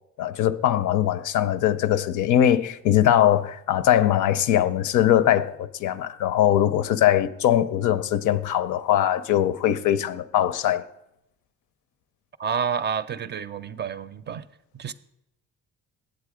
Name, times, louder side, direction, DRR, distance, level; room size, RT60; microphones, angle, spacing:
voice 1, 0.2-10.8, left 11 dB, 80° left, 0.5 m, -21 dB
voice 2, 12.4-14.4 14.7-14.9, right 7 dB, 35° right, 0.5 m, -29 dB
8.1 x 7.6 x 4.9 m
cardioid pair, 90°, 30 cm